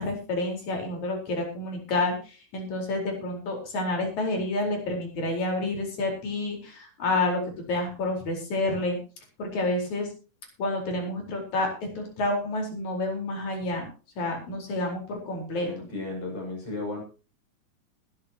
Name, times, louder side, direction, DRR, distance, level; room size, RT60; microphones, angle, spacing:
voice 1, 0.0-9.0 9.4-10.1 10.6-11.7 12.0-13.9 14.2-15.9, left 2 dB, 65° left, 2 dB, 5.8 m, -29 dB
voice 2, 15.6-17.0, left 2 dB, 45° left, 0 dB, 7.9 m, -34 dB
20.5 x 11.5 x 2.9 m, 0.34 s
omnidirectional pair, 3.6 m